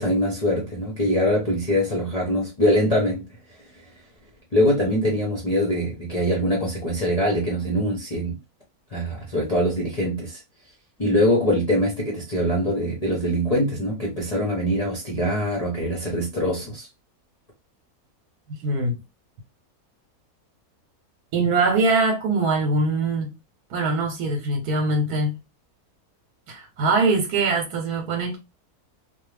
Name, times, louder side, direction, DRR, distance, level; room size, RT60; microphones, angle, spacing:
voice 1, 0.0-3.2 4.5-8.4 8.9-10.4 11.0-16.9, equal, 40° left, 0.6 m, -23 dB
voice 2, 18.6-18.9 21.3-23.3 23.7-25.4 26.5-28.4, right 3 dB, 80° right, 1.2 m, -22 dB
2.4 x 2.3 x 3.1 m
omnidirectional pair, 1.6 m